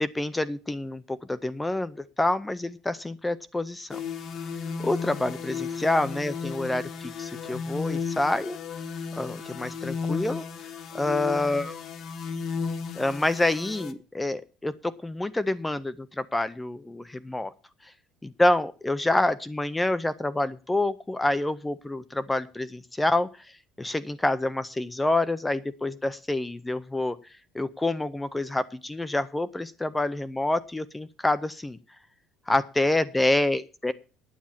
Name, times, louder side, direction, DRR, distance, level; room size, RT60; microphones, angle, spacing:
voice 1, 0.0-4.0 4.8-6.9 7.2-8.6 9.2-10.4 10.9-11.7 13.0-17.5 18.4-23.3 23.8-27.2 27.5-31.8 32.5-33.9, left 2 dB, 5° left, 14 dB, 0.5 m, -27 dB
sound 1, 3.9-13.9, left 5 dB, 40° left, 1.0 m, -34 dB
9.6 x 8.6 x 7.1 m, 0.34 s
cardioid pair, 175°, 0 cm